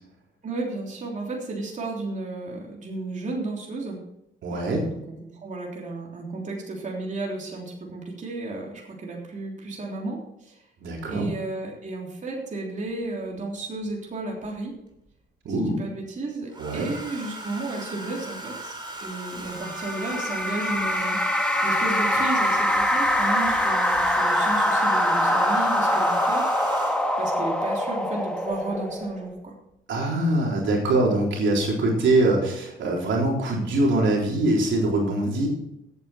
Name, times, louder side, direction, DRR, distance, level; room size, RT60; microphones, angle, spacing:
voice 1, 0.4-4.0 4.5-10.6 11.1-14.7 15.6-21.2 21.6-26.5 27.2-29.5, right 2 dB, 40° right, -1 dB, 3.4 m, -33 dB
voice 2, 4.4-4.8 10.8-11.3 15.4-15.8 16.6-16.9 29.9-35.5, right 2 dB, 70° right, -1 dB, 3.8 m, -23 dB
Domestic sounds home sounds, 12.9-13.0 14.4-15.1 16.5-27.3 28.5-28.8 29.0-29.4, right 2 dB, 25° right, 3.0 m, -39 dB
sound 1, 19.6-29.3, left 1 dB, 5° left, 1.7 m, -23 dB
14.0 x 8.9 x 4.4 m, 0.82 s
cardioid pair, 90°, 20 cm